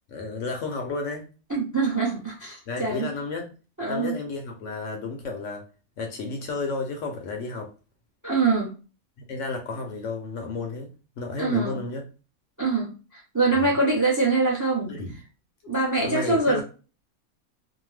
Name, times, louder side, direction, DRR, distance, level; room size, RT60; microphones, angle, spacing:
voice 1, 0.1-1.3 2.7-3.5 3.9-5.6 6.0-7.7 9.3-10.9 11.2-12.0 13.5-13.8 14.9-15.1 16.0-16.6, left 3 dB, 65° left, 0.9 m, -32 dB
voice 2, 1.5-3.1 3.8-4.2 8.2-8.7 11.4-11.8 12.6-15.0 15.6-16.6, right 3 dB, 20° right, 0.5 m, -24 dB
2.7 x 2.1 x 3.1 m
omnidirectional pair, 1.5 m